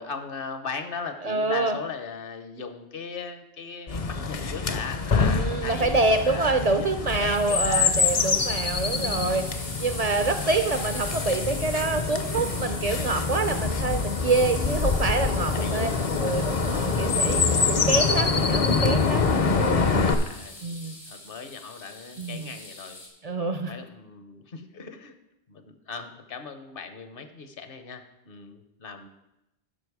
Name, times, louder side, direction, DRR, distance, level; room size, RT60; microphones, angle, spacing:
voice 1, 0.0-7.9 15.5-16.4 20.0-20.6 21.1-23.0 23.6-25.1 25.5-29.1, left 5 dB, 60° left, 8 dB, 1.0 m, -38 dB
voice 2, 1.2-1.8 5.2-15.9 16.2-19.3 19.5-19.9 20.6-21.0 22.2-22.5 23.2-23.7, right 3 dB, 55° right, 8 dB, 0.4 m, -26 dB
Chirp tweet, 3.9-20.1, left 4 dB, 45° left, 0.6 m, -25 dB
sound 1, 7.1-23.1, left 2 dB, 80° left, 2.4 m, -40 dB
12.0 x 5.2 x 4.7 m, 0.88 s
omnidirectional pair, 1.1 m